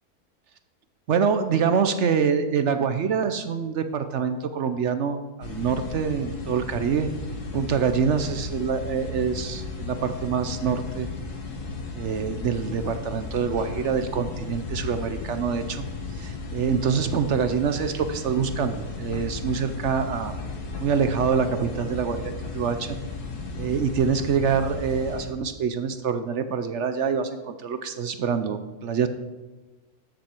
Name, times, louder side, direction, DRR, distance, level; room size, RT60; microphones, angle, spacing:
voice 1, 1.1-7.1 7.5-11.1 11.9-15.8 16.1-20.3 20.8-23.0 23.6-29.1, right 6 dB, 60° right, 9 dB, 0.8 m, -25 dB
sound 1, 5.4-25.3, left 3 dB, 85° left, 2.0 m, -35 dB
12.5 x 7.8 x 4.4 m, 1.2 s
omnidirectional pair, 1.6 m